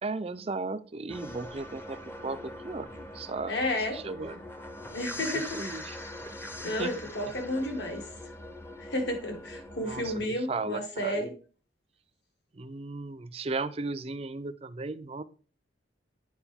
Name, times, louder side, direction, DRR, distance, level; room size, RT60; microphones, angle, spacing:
voice 1, 0.0-2.0 2.2-3.5 3.9-4.4 5.2-6.0 6.6-6.9 9.8-11.2 12.5-15.2, right 3 dB, 35° right, 12 dB, 0.5 m, -36 dB
sound 1, 1.1-10.3, left 1 dB, 15° left, 0.7 m, -42 dB
voice 2, 3.5-4.0 4.9-5.8 6.6-8.1 8.8-11.3, left 1 dB, 65° left, 3 dB, 2.0 m, -32 dB
8.9 x 5.1 x 3.5 m, 0.39 s
head